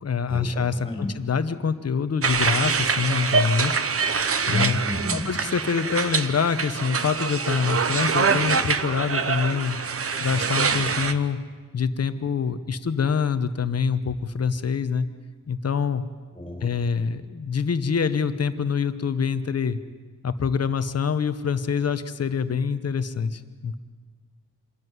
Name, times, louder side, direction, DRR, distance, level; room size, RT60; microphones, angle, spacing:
voice 1, 0.0-3.8 4.5-4.8 5.1-9.8 10.2-11.4 11.7-15.1 15.5-16.0 16.6-19.8 20.2-23.7, left 6 dB, 45° left, 11 dB, 1.0 m, -25 dB
voice 2, 0.7-1.1 4.5-5.3 16.3-16.7, left 1 dB, 15° left, 3 dB, 4.1 m, -31 dB
sound 1, 2.2-11.1, right 5 dB, 45° right, 0.9 m, -25 dB
26.0 x 14.0 x 9.5 m, 1.4 s
wide cardioid pair, 170°, 33 cm